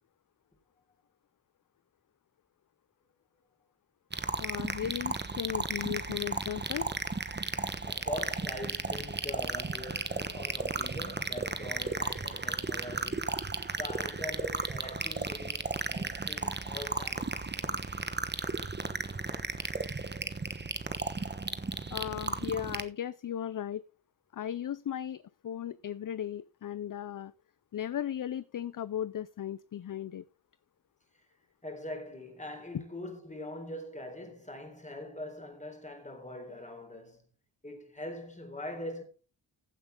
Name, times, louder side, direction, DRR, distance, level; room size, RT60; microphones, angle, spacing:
sound 1, 4.1-22.8, right 3 dB, 20° right, 1.2 m, -34 dB
voice 1, 4.4-6.9 21.9-23.8 24.3-27.3 27.7-30.2 32.7-32.8, left 10 dB, 45° left, 0.5 m, -36 dB
voice 2, 7.8-13.3 13.7-17.5 31.6-37.2 37.6-39.0, left 1 dB, 15° left, 4.1 m, -42 dB
15.5 x 8.1 x 3.7 m
wide cardioid pair, 100°, 46 cm